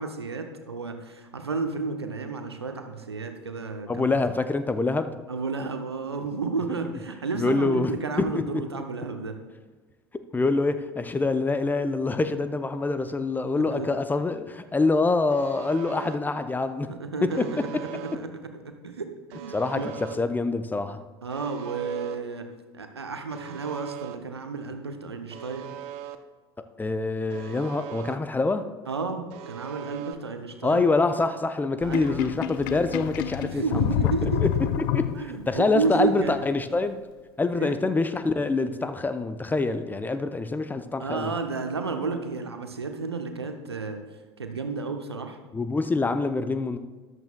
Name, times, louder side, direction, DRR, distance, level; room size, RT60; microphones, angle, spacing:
voice 1, 0.0-4.0 5.3-9.4 13.7-13.9 16.9-19.9 21.2-22.5 22.7-25.7 28.9-30.9 31.8-32.4 33.4-36.3 37.6-37.8 41.0-44.0 44.4-45.4, right 4 dB, 80° right, 6 dB, 0.9 m, -32 dB
voice 2, 3.9-5.2 7.3-8.5 10.1-16.9 17.2-17.7 19.5-21.0 26.8-28.7 30.6-33.9 34.2-35.1 35.5-37.0 37.4-41.3 45.5-46.8, left 3 dB, 15° left, 10 dB, 0.6 m, -26 dB
Alarm, 15.3-16.2 17.3-18.2 19.3-20.2 21.3-22.2 23.3-24.2 25.3-26.2 27.3-28.2 29.3-30.1, right 11 dB, 50° right, 0.6 m, -40 dB
Sink (filling or washing), 31.8-35.6, left 12 dB, 55° left, 0.4 m, -28 dB
13.5 x 11.0 x 2.2 m, 1.4 s
figure-of-eight pair, 70°, 13 cm